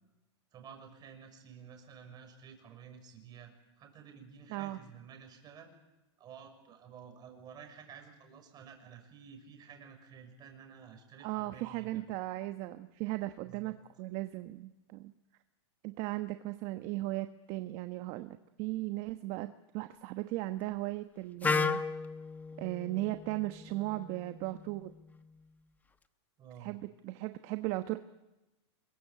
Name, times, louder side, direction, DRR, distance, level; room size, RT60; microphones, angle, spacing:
voice 1, 0.5-5.7 6.2-12.0 13.4-13.7 26.4-26.8, right 7 dB, 30° right, 5 dB, 6.0 m, -52 dB
voice 2, 11.2-15.1 15.8-21.8 22.6-24.9 26.6-28.0, right 17 dB, 45° right, 9 dB, 1.1 m, -37 dB
Wind instrument woodwind instrument, 21.4-25.3, left 4 dB, 10° left, 1.0 m, -36 dB
26.5 x 22.5 x 8.4 m, 1.0 s
supercardioid pair, 140°, 15 cm